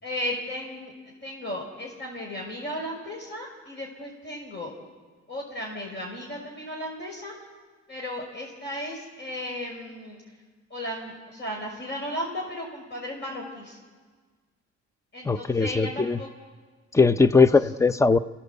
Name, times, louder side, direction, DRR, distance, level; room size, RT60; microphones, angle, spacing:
voice 1, 0.0-0.9 1.2-4.7 5.3-7.3 7.9-10.2 10.7-13.8 15.1-16.3 17.3-17.4, left 1 dB, 35° left, 0 dB, 5.8 m, -35 dB
voice 2, 15.3-16.2 16.9-18.2, left 4 dB, 10° left, 14 dB, 0.7 m, -20 dB
29.5 x 16.5 x 8.2 m, 1.5 s
cardioid pair, 90°, 30 cm